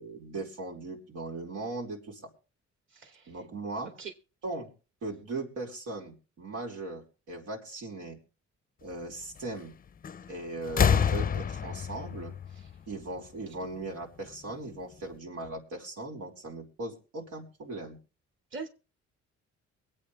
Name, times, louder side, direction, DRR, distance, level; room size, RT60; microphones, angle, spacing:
voice 1, 0.0-2.2 3.3-3.9 4.4-4.7 5.0-8.2 8.8-9.7 10.3-12.3 12.9-18.0, right 2 dB, 90° right, -1 dB, 4.5 m, -38 dB
voice 2, 2.9-3.4 4.0-4.1 12.5-12.7 18.5-18.7, right 5 dB, 40° right, 3 dB, 2.3 m, -42 dB
sound 1, 10.0-10.3 10.6-13.4 14.5-14.6, left 7 dB, 30° left, 0.5 m, -28 dB
23.5 x 8.6 x 3.5 m, 0.34 s
cardioid pair, 90°, 30 cm